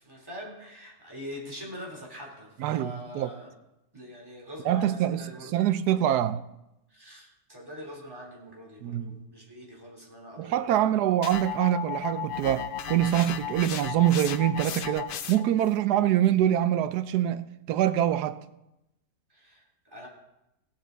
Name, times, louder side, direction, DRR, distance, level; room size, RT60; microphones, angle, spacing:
voice 1, 0.0-3.5 3.9-5.7 6.9-10.9 19.3-20.1, equal, 15° right, 3.4 m, -43 dB
voice 2, 2.6-3.3 4.6-6.4 8.8-9.2 10.4-18.4, right 11 dB, 90° right, 1.2 m, -25 dB
sound 1, 11.2-15.6, left 9 dB, 90° left, 0.4 m, -35 dB
17.0 x 8.5 x 4.0 m
omnidirectional pair, 1.7 m